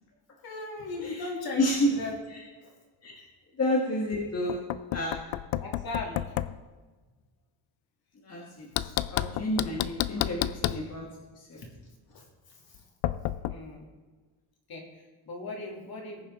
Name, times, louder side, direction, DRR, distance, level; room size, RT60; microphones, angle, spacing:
voice 1, 0.4-2.2 2.6-2.7 3.0-3.3 5.6-6.6 8.8-9.6 10.0-10.2 10.6-10.8 11.5-12.9 13.4-13.9 14.7-16.3, left 3 dB, 50° left, 0 dB, 2.8 m, -39 dB
voice 2, 3.6-4.6 4.9-5.2 8.2-11.1 11.5-11.6, left 1 dB, 30° left, -2 dB, 1.5 m, -30 dB
Knock, 4.5-6.6 8.8-10.9 13.0-13.5, left 14 dB, 75° left, 0.6 m, -31 dB
20.0 x 7.1 x 3.7 m, 1.3 s
cardioid pair, 155°, 48 cm